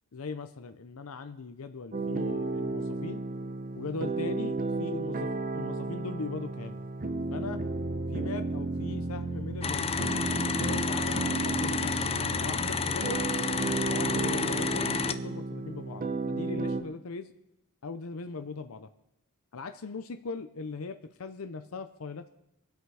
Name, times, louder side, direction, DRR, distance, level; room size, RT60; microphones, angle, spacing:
voice 1, 0.1-3.2 3.7-6.8 7.3-7.6 8.1-13.2 13.9-17.3 17.8-18.9 19.5-22.3, left 4 dB, 70° left, 9 dB, 0.7 m, -39 dB
sound 1, 1.9-16.8, right 2 dB, 40° right, 0.8 m, -33 dB
sound 2, 9.6-15.2, left 6 dB, 30° left, 0.5 m, -31 dB
23.0 x 8.2 x 4.8 m, 0.86 s
head